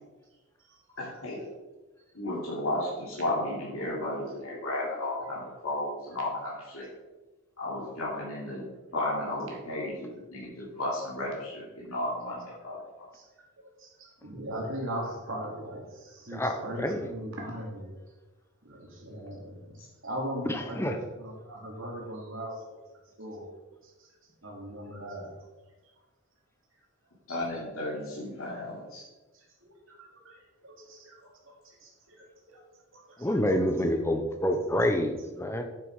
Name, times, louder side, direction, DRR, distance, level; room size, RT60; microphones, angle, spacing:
voice 1, 1.0-1.4 2.1-6.9 7.6-12.8 19.8-19.9 27.3-29.0, left 1 dB, 75° left, -7 dB, 3.1 m, -33 dB
voice 2, 13.8-17.9 18.6-22.6 23.2-23.5 24.4-25.3 29.7-30.4 30.6-31.2 31.8-32.2 32.5-32.6 32.9-33.3, right 1 dB, 60° right, -1 dB, 2.7 m, -39 dB
voice 3, 16.3-17.1 20.4-21.0 33.2-35.6, left 1 dB, 10° left, 5 dB, 0.8 m, -28 dB
9.7 x 7.1 x 4.8 m, 1.2 s
head